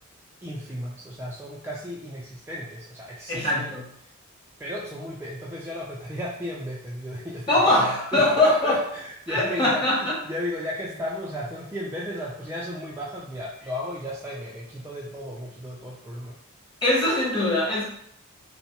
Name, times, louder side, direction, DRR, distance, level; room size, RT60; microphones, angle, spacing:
voice 1, 0.4-3.7 4.0-4.1 4.6-16.4, equal, 10° right, -5 dB, 0.3 m, -34 dB
voice 2, 3.3-3.8 7.5-8.8 9.3-10.1 16.8-17.8, left 1 dB, 20° left, -6 dB, 0.9 m, -22 dB
3.1 x 2.0 x 2.9 m, 0.69 s
head